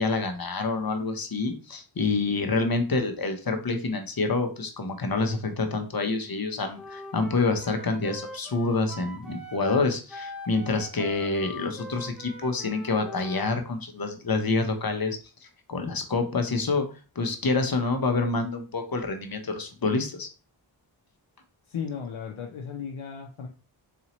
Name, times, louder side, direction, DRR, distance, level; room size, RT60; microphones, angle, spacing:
voice 1, 0.0-20.3, left 3 dB, 50° left, 5 dB, 0.8 m, -27 dB
Wind instrument woodwind instrument, 6.7-13.5, left 1 dB, ahead, 0.8 m, -42 dB
voice 2, 21.7-23.5, left 7 dB, 80° left, 2 dB, 0.6 m, -35 dB
4.1 x 2.7 x 3.0 m, 0.35 s
wide cardioid pair, 55°, 47 cm